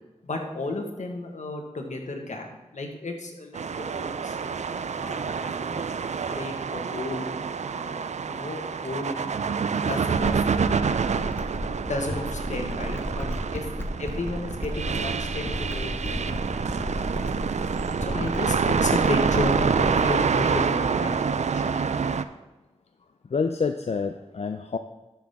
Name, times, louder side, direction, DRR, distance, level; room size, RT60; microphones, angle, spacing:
voice 1, 0.2-2.5 2.7-5.9 6.3-7.3 7.7-9.2 9.9-10.3 11.9-13.3 13.5-13.7 14.0-17.2 18.0-21.2 21.5-21.6, left 2 dB, 75° left, 2 dB, 1.5 m, -33 dB
sound 1, 3.5-22.2, right 6 dB, 65° right, 0.4 m, -27 dB
sound 2, 10.1-20.1, left 1 dB, 20° left, 1.0 m, -34 dB
voice 2, 23.3-24.8, left 5 dB, 60° left, 7 dB, 0.5 m, -27 dB
12.0 x 5.9 x 3.6 m, 1.1 s
cardioid pair, 45°, 12 cm